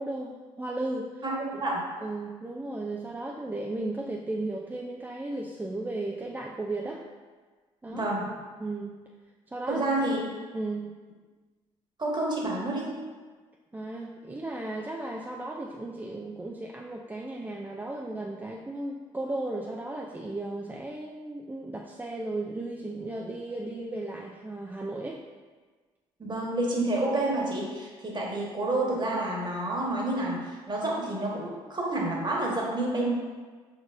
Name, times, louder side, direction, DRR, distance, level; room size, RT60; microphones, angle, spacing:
voice 1, 0.0-1.2 1.5-1.6 2.0-7.1 7.8-8.1 8.6-9.0 9.5-9.8 10.1-10.3 10.5-10.9 13.7-25.2, right 2 dB, 15° right, -1 dB, 0.4 m, -35 dB
voice 2, 1.2-1.8 7.9-8.3 9.7-10.2 12.0-12.9 26.2-33.1, right 2 dB, 30° right, -3 dB, 1.4 m, -29 dB
4.8 x 4.0 x 2.6 m, 1.4 s
hypercardioid pair, 55°, 14 cm